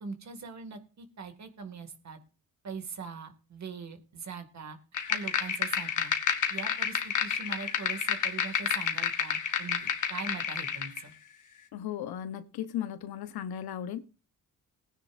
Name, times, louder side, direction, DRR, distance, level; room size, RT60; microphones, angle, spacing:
voice 1, 0.0-2.2 2.6-4.8 5.1-6.1 6.5-11.1, right 5 dB, 50° right, 2.3 m, -42 dB
sound 1, 4.9-11.0, left 7 dB, 55° left, 1.6 m, -30 dB
voice 2, 11.7-14.0, left 10 dB, 90° left, 1.1 m, -36 dB
19.5 x 9.9 x 2.6 m
cardioid pair, 105°, 37 cm